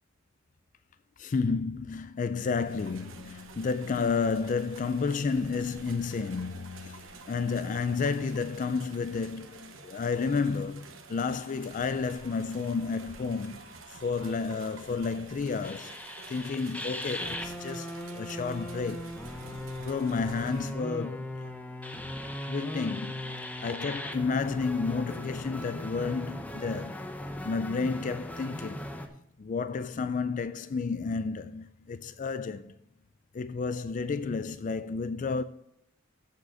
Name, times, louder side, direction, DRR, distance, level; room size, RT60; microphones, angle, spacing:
voice 1, 1.2-13.6 13.9-16.0 16.3-17.9 18.1-19.1 19.8-21.3 22.5-27.0 27.4-28.9 29.4-32.7 33.3-35.4, left 4 dB, 40° left, 0.4 m, -31 dB
sound 1, 2.3-20.7, right 4 dB, 80° right, 1.1 m, -49 dB
sound 2, 15.6-29.1, left 1 dB, 10° left, 0.7 m, -38 dB
7.3 x 6.5 x 6.4 m
head